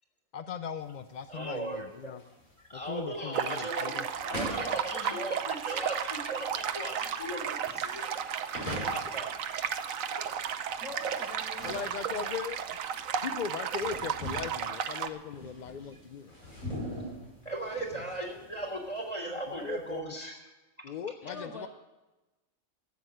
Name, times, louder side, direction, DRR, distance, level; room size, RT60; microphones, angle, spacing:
voice 1, 0.3-2.2 2.7-4.0 11.6-12.6 13.2-16.3 19.5-20.1 20.8-21.7, left 7 dB, 60° left, 10 dB, 0.4 m, -38 dB
sound 1, 0.8-20.0, left 1 dB, 90° left, 6.1 m, -44 dB
voice 2, 1.3-1.8 2.7-8.1 8.8-9.3 9.5-9.7 17.4-20.4, right 1 dB, 25° left, 2 dB, 3.3 m, -37 dB
sound 2, 3.3-15.1, right 8 dB, 75° right, 1.2 m, -34 dB
voice 3, 4.1-5.4 5.9-6.4 10.8-12.4 21.2-21.7, left 1 dB, ahead, 1 dB, 2.2 m, -46 dB
13.5 x 8.4 x 9.1 m, 1.1 s
omnidirectional pair, 1.4 m